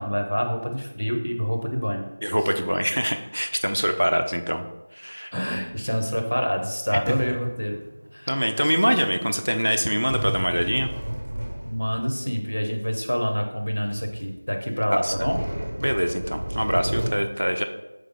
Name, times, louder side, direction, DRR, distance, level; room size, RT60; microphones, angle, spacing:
voice 1, 0.0-2.1 5.3-7.8 8.1-8.5 11.6-15.4, equal, 70° left, 3 dB, 0.8 m, -27 dB
voice 2, 2.2-4.7 4.9-5.3 8.3-10.9 14.9-15.1 15.8-17.7, equal, 75° right, 6 dB, 0.5 m, -24 dB
sound 1, 5.5-6.2 7.1-8.3 10.1-12.2 13.0-13.1 13.6-13.7 13.9-14.3 15.0-17.1, right 1 dB, 35° right, 0.7 m, -31 dB
3.7 x 3.5 x 3.5 m, 1.0 s
figure-of-eight pair, 175°, 0 cm